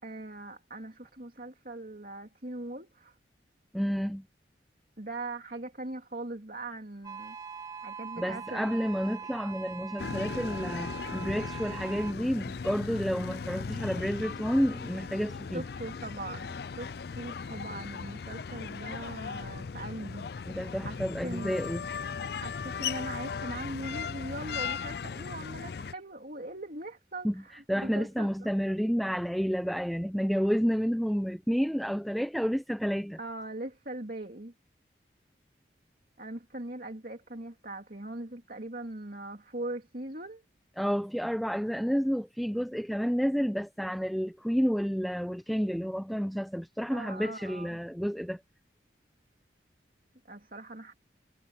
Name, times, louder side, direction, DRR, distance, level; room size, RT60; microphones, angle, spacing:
voice 1, 0.0-3.2 5.0-9.0 15.5-21.5 22.4-28.5 33.2-34.5 36.2-40.4 46.9-47.8 50.2-50.9, right 2 dB, 50° right, 2.8 m, -41 dB
voice 2, 3.7-4.2 8.2-15.6 20.5-21.9 27.2-27.3 27.7-33.2 40.8-48.4, equal, ahead, 0.6 m, -30 dB
sound 1, 7.0-12.1, right 6 dB, 20° right, 1.0 m, -42 dB
sound 2, 10.0-25.9, left 5 dB, 60° left, 0.4 m, -37 dB
head